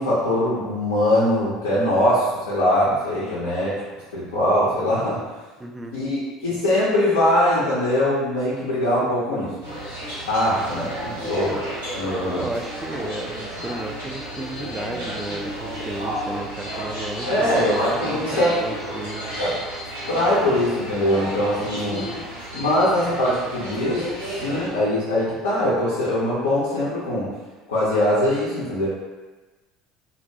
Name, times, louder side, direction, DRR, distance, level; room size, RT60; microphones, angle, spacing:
voice 1, 0.0-3.7 4.1-5.2 5.9-9.5 10.3-11.6 11.9-12.4 17.3-18.5 19.4-19.7 20.1-22.0 22.5-27.3 27.7-28.9, left 1 dB, 70° left, -9 dB, 0.6 m, -22 dB
voice 2, 5.6-6.0 12.3-17.6 18.0-19.4 21.8-22.2, right 1 dB, 10° right, 3 dB, 0.3 m, -33 dB
sound 1, 9.6-24.7, equal, 85° right, 1.0 m, -32 dB
2.5 x 2.2 x 2.6 m, 1.2 s
figure-of-eight pair, 65°, 0 cm